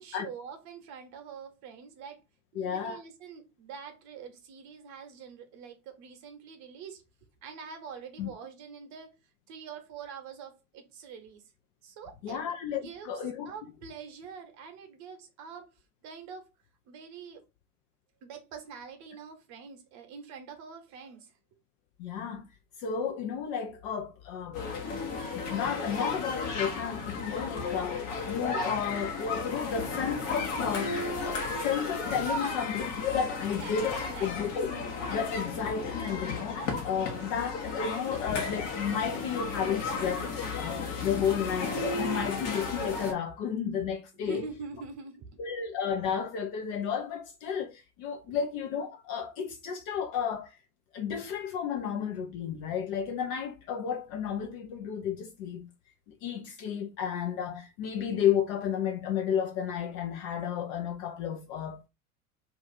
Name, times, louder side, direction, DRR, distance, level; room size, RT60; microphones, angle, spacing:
voice 1, 0.0-2.2 2.5-7.0 7.4-9.1 9.5-11.4 11.8-12.4 12.7-13.2 13.5-15.7 16.0-16.5 16.9-17.4 18.2-21.3 32.4-32.6 33.4-34.5 40.7-40.8 44.2-45.3 48.3-48.4 49.4-49.5, right 6 dB, 40° right, 0.9 m, -45 dB
voice 2, 2.6-3.0 8.2-8.3 12.2-13.5 22.0-22.5 22.8-24.6 25.3-34.7 35.1-40.3 40.6-44.4 45.4-50.6 50.9-55.7 56.2-61.8, left 7 dB, 35° left, 0.4 m, -32 dB
sound 1, 24.5-43.1, left 4 dB, 55° left, 1.1 m, -34 dB
2.6 x 2.3 x 4.0 m
figure-of-eight pair, 85°, 44 cm